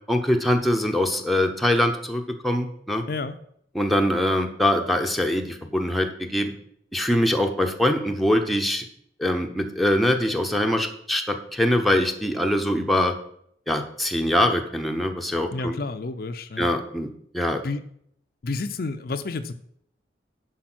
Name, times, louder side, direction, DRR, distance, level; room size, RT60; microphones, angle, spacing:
voice 1, 0.1-3.0 3.7-6.5 6.9-8.9 9.2-13.1 13.7-15.8 16.6-17.1 17.3-17.6, left 1 dB, ahead, 3 dB, 0.8 m, -23 dB
voice 2, 15.5-16.7 17.6-17.8 18.4-19.5, left 3 dB, 55° left, 9 dB, 0.5 m, -30 dB
10.5 x 4.8 x 6.1 m, 0.69 s
head